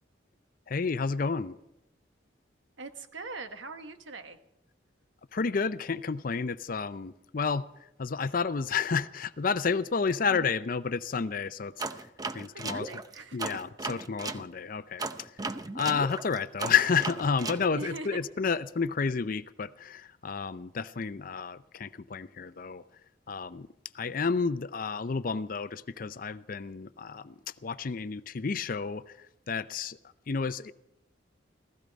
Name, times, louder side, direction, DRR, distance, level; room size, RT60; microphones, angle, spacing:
voice 1, 0.7-1.6 5.3-7.7 8.0-11.7 12.3-12.9 13.3-15.3 15.7-22.8 23.3-23.7 23.9-30.0 30.3-30.7, left 5 dB, 45° left, 0.5 m, -30 dB
voice 2, 2.8-4.4 10.3-10.4 12.5-13.6 17.7-18.2, right 3 dB, 80° right, 1.3 m, -42 dB
sound 1, 11.8-14.4 15.0-17.6, right 3 dB, 20° right, 0.6 m, -36 dB
16.0 x 15.5 x 5.2 m
head